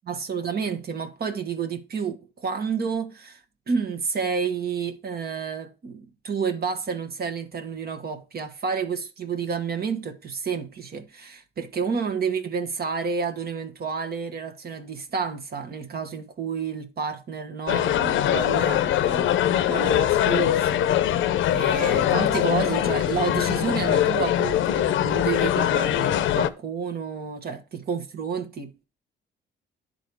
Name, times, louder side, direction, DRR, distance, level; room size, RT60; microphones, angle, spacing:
voice 1, 0.1-3.4 3.7-28.8, right 6 dB, 50° right, 1.3 m, -30 dB
sound 1, 17.7-26.5, left 11 dB, 75° left, 0.6 m, -22 dB
10.5 x 4.1 x 4.7 m
cardioid pair, 90°, 20 cm